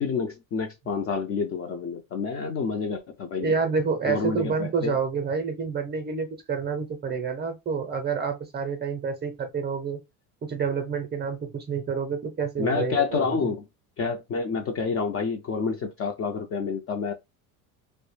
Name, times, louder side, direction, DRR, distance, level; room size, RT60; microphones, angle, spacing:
voice 1, 0.0-3.5 4.0-5.0 12.6-13.6 14.0-17.1, left 5 dB, 35° left, 0.4 m, -28 dB
voice 2, 3.4-10.0 10.4-13.5, right 5 dB, 25° right, 0.5 m, -28 dB
2.2 x 2.1 x 3.1 m
supercardioid pair, 105°, 40 cm